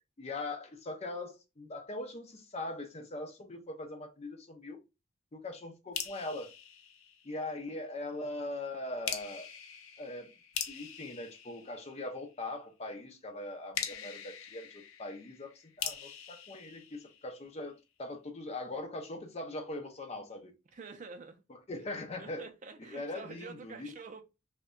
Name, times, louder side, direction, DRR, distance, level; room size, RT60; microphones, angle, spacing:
voice 1, 0.2-4.8 5.3-6.5 7.2-9.5 10.0-10.3 10.7-20.5 21.5-22.5 22.9-23.9, left 2 dB, 30° left, 0.5 m, -41 dB
sound 1, 5.9-7.7 9.1-12.4 13.7-17.7, left 8 dB, 85° left, 0.5 m, -42 dB
voice 2, 20.7-21.4 22.2-24.2, right 4 dB, 40° right, 0.4 m, -47 dB
2.7 x 2.1 x 2.4 m
head